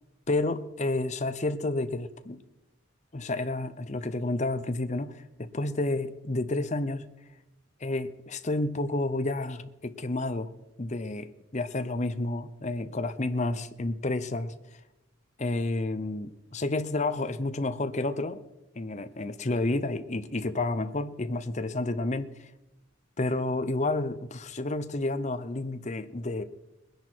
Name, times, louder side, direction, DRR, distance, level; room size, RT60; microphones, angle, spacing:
voice 1, 0.3-2.4 3.1-7.1 7.8-10.5 10.8-11.3 11.5-14.5 15.4-18.4 18.8-22.3 23.2-26.4, left 2 dB, 35° left, 11 dB, 0.7 m, -30 dB
20.5 x 10.5 x 4.5 m, 0.99 s
head